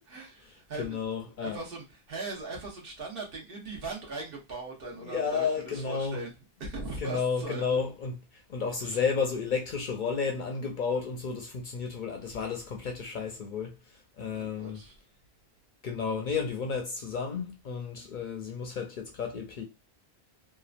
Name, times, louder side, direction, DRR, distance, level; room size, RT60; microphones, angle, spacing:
voice 1, 0.1-1.0 1.4-6.3 6.6-7.8 8.8-9.0 14.3-14.9, right 2 dB, 60° right, 1.1 m, -39 dB
voice 2, 0.8-1.6 5.0-6.2 7.0-14.8 15.8-19.6, left 5 dB, 60° left, 0.6 m, -32 dB
2.9 x 2.3 x 2.4 m
omnidirectional pair, 1.1 m